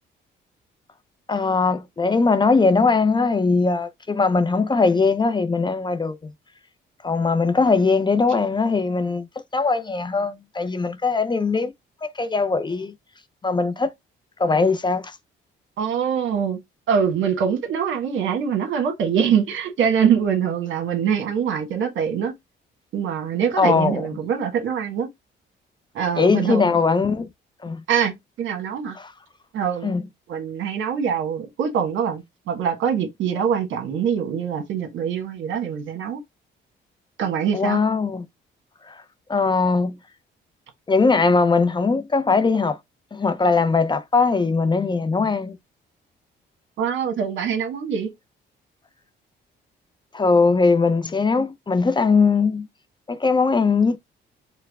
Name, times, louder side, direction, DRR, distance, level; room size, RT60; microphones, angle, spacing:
voice 1, 1.3-6.2 7.0-9.3 9.5-11.7 12.0-12.9 13.4-13.9 14.4-15.2 23.6-24.0 26.2-27.3 27.6-27.8 29.0-29.1 29.8-30.0 37.5-38.2 38.9-39.0 39.3-40.0 40.9-42.8 43.1-45.6 50.1-52.7 53.1-54.0, left 4 dB, 25° left, 0.5 m, -20 dB
voice 2, 15.8-16.6 16.9-22.3 22.9-25.1 25.9-26.7 27.9-28.9 29.5-29.9 30.3-36.2 37.2-37.8 46.8-48.1, right 7 dB, 80° right, 1.3 m, -24 dB
4.6 x 2.1 x 3.4 m
cardioid pair, 90°, 20 cm